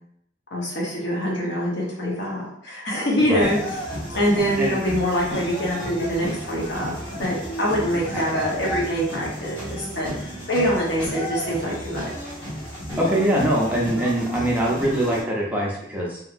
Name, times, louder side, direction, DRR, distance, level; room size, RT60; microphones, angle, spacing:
voice 1, 0.5-3.8 4.1-6.9 7.2-12.1, equal, 70° left, -4 dB, 0.9 m, -24 dB
sound 1, 3.4-15.2, equal, 25° left, 1.2 m, -33 dB
voice 2, 8.1-8.4 13.0-16.2, right 1 dB, 10° right, -4 dB, 0.5 m, -23 dB
3.0 x 2.7 x 2.5 m, 0.71 s
head